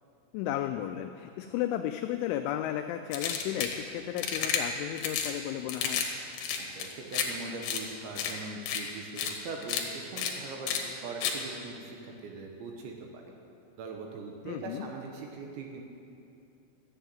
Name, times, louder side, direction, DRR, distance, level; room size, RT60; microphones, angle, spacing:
voice 1, 0.3-6.0 14.5-14.9, left 12 dB, 90° left, 7 dB, 2.7 m, -34 dB
sound 1, 3.1-3.8 4.2-4.6 5.0-5.3 5.7-6.1 6.3-7.3 7.6-7.8 8.2-8.3 8.7-8.8 9.2-9.3 9.6-9.8 10.2-10.3 10.7-10.8 11.2-11.3, left 8 dB, 70° left, 2.5 m, -31 dB
voice 2, 6.6-13.3 13.8-15.8, right 3 dB, 75° right, 2 dB, 3.0 m, -41 dB
13.0 x 7.8 x 9.2 m, 2.6 s
omnidirectional pair, 5.9 m